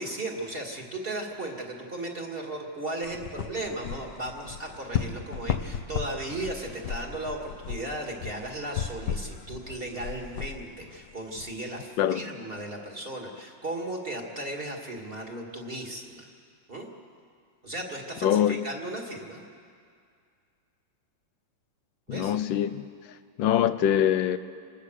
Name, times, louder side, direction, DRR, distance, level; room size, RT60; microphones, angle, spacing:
voice 1, 0.0-16.3 16.7-16.9 17.6-19.4 22.1-22.4, right 1 dB, 30° right, 2.5 m, -36 dB
sound 1, 3.0-11.5, left 8 dB, 70° left, 1.5 m, -35 dB
voice 2, 18.2-18.6 22.1-22.9 23.4-24.4, left 10 dB, 90° left, 1.5 m, -24 dB
26.0 x 20.5 x 6.6 m
omnidirectional pair, 2.0 m